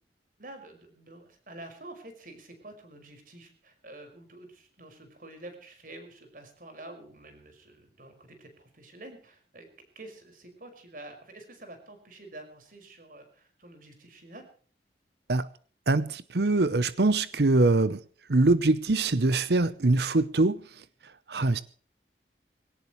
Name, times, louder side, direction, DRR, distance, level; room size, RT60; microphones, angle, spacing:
voice 1, 0.4-9.7 10.0-14.5, right 2 dB, 50° right, 6 dB, 5.5 m, -48 dB
voice 2, 15.9-18.0 18.3-21.6, right 2 dB, 65° right, 15 dB, 0.8 m, -24 dB
22.0 x 18.0 x 3.2 m, 0.43 s
head